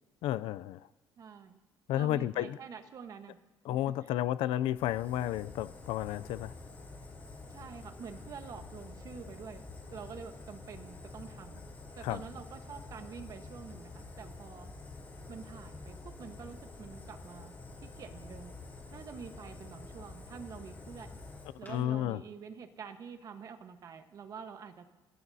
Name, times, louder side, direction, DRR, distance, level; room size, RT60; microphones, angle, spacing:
voice 1, 0.2-0.8 1.9-2.6 3.6-6.5 12.0-12.2 21.7-22.2, left 13 dB, 85° left, 16 dB, 0.4 m, -32 dB
voice 2, 1.2-1.6 1.9-3.4 3.7-4.1 7.5-11.6 12.0-14.7 15.3-17.5 17.8-18.5 18.9-21.2 21.6-24.9, right 6 dB, 40° right, 7 dB, 1.2 m, -47 dB
Fire, 4.8-21.8, left 3 dB, 20° left, 3.2 m, -48 dB
29.0 x 15.5 x 2.8 m, 1.2 s
cardioid pair, 165°, 9 cm